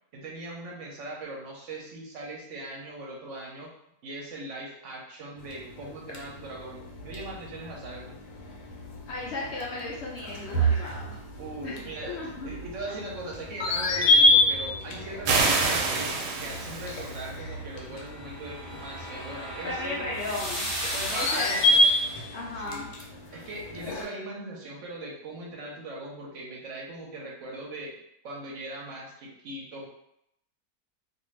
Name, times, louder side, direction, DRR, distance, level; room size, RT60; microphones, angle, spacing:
voice 1, 0.1-3.7 4.0-8.2 11.4-16.1 16.4-20.0 20.9-21.8 22.7-22.9 23.3-28.0 28.2-29.9, right 2 dB, 60° right, -2 dB, 0.9 m, -40 dB
sound 1, 5.4-24.0, left 1 dB, 90° left, 1.3 m, -29 dB
voice 2, 9.1-11.1 11.6-12.6 12.9-13.0 14.0-14.2 19.6-20.7 21.1-21.5 22.3-22.9, left 2 dB, 65° left, -4 dB, 0.7 m, -35 dB
sound 2, 15.3-17.3, right 4 dB, 85° right, 1.2 m, -26 dB
sound 3, 17.7-22.3, equal, 25° right, 0.8 m, -36 dB
2.6 x 2.5 x 3.1 m, 0.78 s
omnidirectional pair, 1.7 m